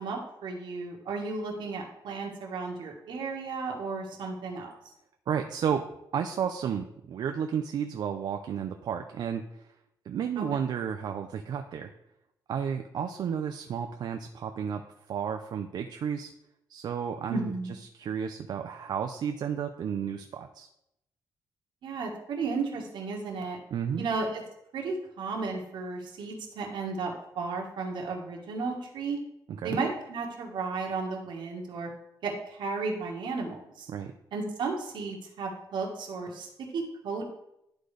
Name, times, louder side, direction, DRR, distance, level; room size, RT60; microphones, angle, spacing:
voice 1, 0.0-4.7 10.4-10.5 17.3-17.7 21.8-23.6 24.0-24.4 24.7-29.2 29.6-31.9 32.2-33.9 34.3-37.2, right 4 dB, 80° right, 0 dB, 1.4 m, -34 dB
voice 2, 5.3-5.8 6.1-9.7 10.1-11.9 12.5-14.8 15.1-16.3 16.7-17.5 17.9-20.7 23.7-24.1 29.5-29.8 33.9-34.1, right 8 dB, 65° right, 6 dB, 0.4 m, -32 dB
11.5 x 3.9 x 3.3 m, 0.83 s
cardioid pair, 125°, 8 cm